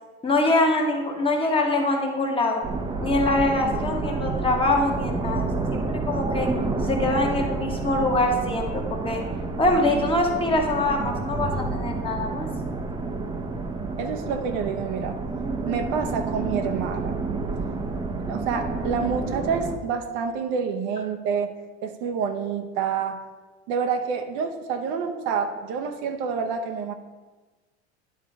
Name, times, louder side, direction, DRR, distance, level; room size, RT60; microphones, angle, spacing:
voice 1, 0.2-2.6 3.0-5.5 5.9-6.5 6.8-9.2 9.6-12.5, left 2 dB, 15° left, 1 dB, 1.2 m, -24 dB
sound 1, 2.6-19.8, right 3 dB, 15° right, 0.6 m, -29 dB
voice 2, 14.0-15.2 15.6-17.2 18.3-21.5 21.8-23.2 23.7-26.9, right 6 dB, 60° right, 6 dB, 0.8 m, -28 dB
10.0 x 3.7 x 4.6 m, 1.3 s
supercardioid pair, 115°, 34 cm